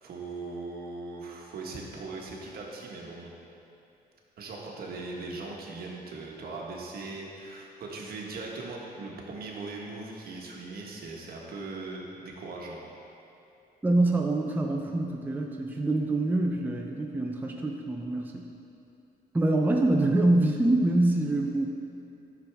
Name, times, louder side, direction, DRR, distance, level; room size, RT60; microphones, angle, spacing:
voice 1, 0.0-3.3 4.4-12.8, right 3 dB, 65° right, -2 dB, 1.3 m, -39 dB
voice 2, 13.8-18.5 19.3-21.7, right 2 dB, 10° right, 1 dB, 0.5 m, -25 dB
10.5 x 6.1 x 3.5 m, 2.7 s
cardioid pair, 120°, 17 cm